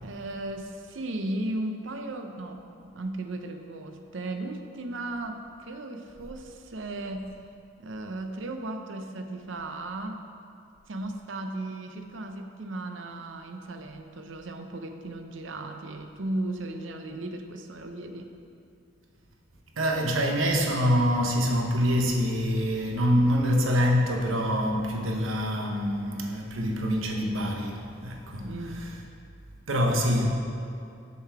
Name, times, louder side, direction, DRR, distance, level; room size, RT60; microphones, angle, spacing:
voice 1, 0.0-7.3 7.8-10.2 10.9-18.3 28.4-28.9, right 2 dB, 70° right, 6 dB, 0.6 m, -36 dB
voice 2, 19.8-28.5 29.7-30.3, equal, 90° right, 1 dB, 1.0 m, -25 dB
7.1 x 6.5 x 4.7 m, 2.4 s
head